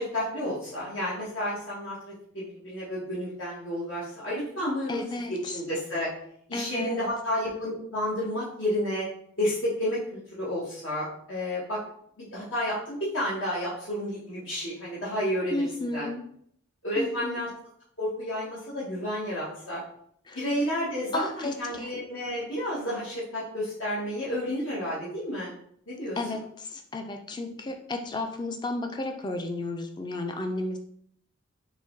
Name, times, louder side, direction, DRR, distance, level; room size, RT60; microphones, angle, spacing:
voice 1, 0.0-5.0 5.3-6.1 6.5-9.0 9.4-11.8 12.2-16.1 16.8-17.5 18.0-19.8 20.3-25.5 25.9-26.4, equal, 70° left, -9 dB, 1.3 m, -31 dB
voice 2, 4.9-5.3 6.5-7.0 15.5-16.2 17.0-17.4 20.3-20.4 21.1-21.9 26.2-30.8, left 2 dB, 20° left, 4 dB, 0.4 m, -33 dB
4.0 x 3.0 x 3.8 m, 0.66 s
head